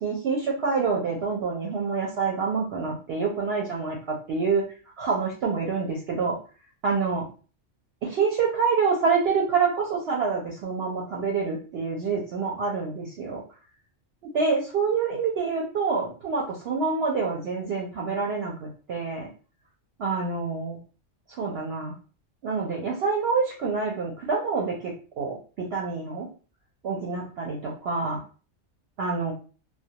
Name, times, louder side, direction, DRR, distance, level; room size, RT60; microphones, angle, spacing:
voice 1, 0.0-4.6 5.0-6.4 6.8-7.2 8.0-13.4 14.3-19.3 20.0-20.8 21.3-21.9 22.4-26.3 26.8-28.2 29.0-29.3, right 5 dB, 65° right, -1 dB, 0.7 m, -27 dB
2.2 x 2.1 x 2.7 m, 0.37 s
omnidirectional pair, 1.3 m